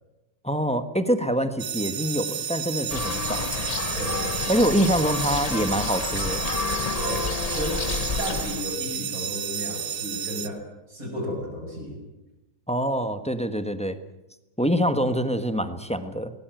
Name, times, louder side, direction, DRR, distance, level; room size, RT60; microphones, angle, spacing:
voice 1, 0.4-3.5 4.5-6.4 12.7-14.0 14.6-16.3, equal, 5° left, 9 dB, 1.2 m, -25 dB
sound 1, 1.6-10.5, right 9 dB, 80° right, 1.8 m, -32 dB
sound 2, 2.9-8.8, left 4 dB, 35° left, 0.7 m, -30 dB
voice 2, 3.9-4.6 7.0-7.3 7.5-7.8 8.2-12.0, equal, 55° right, 2 dB, 6.6 m, -33 dB
19.5 x 19.0 x 9.2 m, 0.99 s
omnidirectional pair, 1.8 m